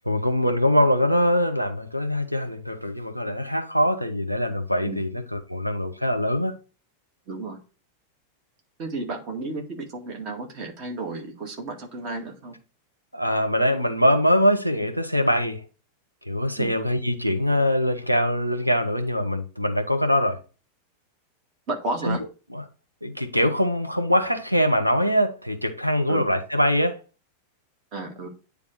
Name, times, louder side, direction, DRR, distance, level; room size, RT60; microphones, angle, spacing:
voice 1, 0.0-6.6 13.1-15.6 16.3-20.4 22.0-22.2 22.5-22.6 23.0-27.0, equal, 90° right, 1.0 m, -23 dB
voice 2, 7.3-7.6 8.8-12.6 16.6-16.7 21.7-22.2 26.1-26.2 27.9-28.3, right 2 dB, 40° right, 2.2 m, -32 dB
9.6 x 3.4 x 4.9 m
figure-of-eight pair, 90°, 0 cm